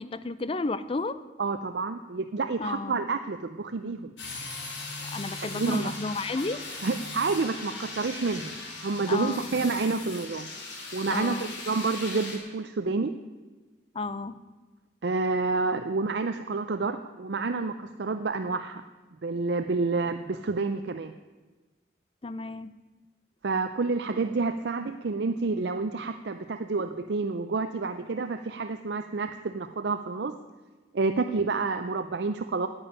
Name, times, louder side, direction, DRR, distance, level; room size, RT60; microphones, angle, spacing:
voice 1, 0.0-1.2 2.6-3.0 5.1-6.6 9.1-9.5 11.1-11.5 13.9-14.4 22.2-22.7, left 3 dB, 30° left, 15 dB, 0.5 m, -32 dB
voice 2, 1.4-4.1 5.6-5.9 6.8-8.5 8.8-10.5 10.9-13.2 15.0-18.8 19.2-21.1 23.4-30.4 30.9-32.7, right 4 dB, 65° right, 8 dB, 0.5 m, -29 dB
sound 1, 4.2-12.4, left 3 dB, 85° left, 3.0 m, -39 dB
9.8 x 8.8 x 10.0 m, 1.2 s
head